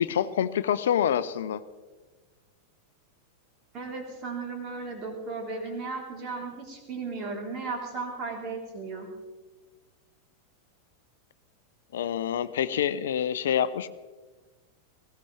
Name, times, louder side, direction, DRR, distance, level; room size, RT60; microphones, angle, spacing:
voice 1, 0.0-1.6 11.9-13.9, left 9 dB, 60° left, 15 dB, 0.5 m, -26 dB
voice 2, 3.7-9.1, right 4 dB, 35° right, 1 dB, 3.8 m, -35 dB
19.5 x 16.5 x 3.4 m, 1.3 s
figure-of-eight pair, 90°, 0 cm